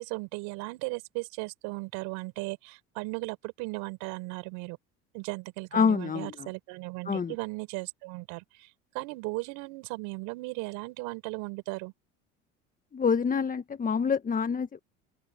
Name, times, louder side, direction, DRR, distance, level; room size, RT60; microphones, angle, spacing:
voice 1, 0.0-4.8 5.1-8.7 8.9-11.9, right 26 dB, 75° right, 5.9 m, -36 dB
voice 2, 5.7-6.5 7.1-7.3 12.9-14.8, left 6 dB, 25° left, 1.4 m, -27 dB
open air
hypercardioid pair, 80°, 31 cm